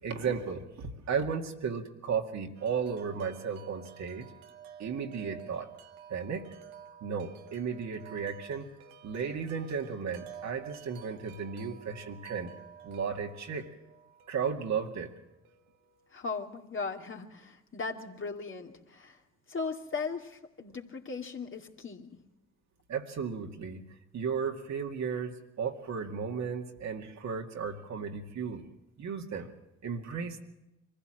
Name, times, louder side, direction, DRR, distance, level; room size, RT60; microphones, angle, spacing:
voice 1, 0.0-4.3 4.8-5.7 6.1-6.5 7.0-8.7 9.0-12.5 12.8-13.7 14.3-15.1 22.9-23.8 24.1-28.7 29.0-29.5 29.8-30.4, right 6 dB, 55° right, 3 dB, 2.2 m, -34 dB
Wind chime, 2.5-16.5, right 8 dB, 80° right, 1.3 m, -52 dB
voice 2, 16.1-19.2 19.5-22.1, left 4 dB, 40° left, 3 dB, 2.4 m, -38 dB
24.0 x 15.5 x 7.7 m, 0.95 s
hypercardioid pair, 55°, 33 cm